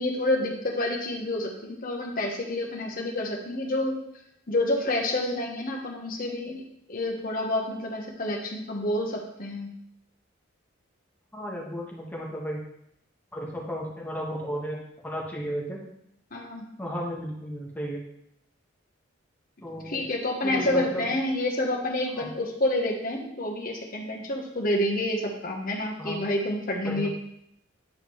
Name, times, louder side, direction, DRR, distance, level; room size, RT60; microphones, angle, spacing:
voice 1, 0.0-4.0 4.5-6.6 6.9-9.7 16.3-16.7 19.8-27.1, left 1 dB, 45° left, 0 dB, 1.1 m, -28 dB
voice 2, 11.3-12.6 13.3-14.8 15.0-15.8 16.8-18.0 19.6-20.1 20.4-21.1 22.2-22.3 26.0-26.2 26.8-27.1, equal, 10° left, -3 dB, 1.5 m, -34 dB
9.4 x 5.0 x 3.2 m, 0.75 s
head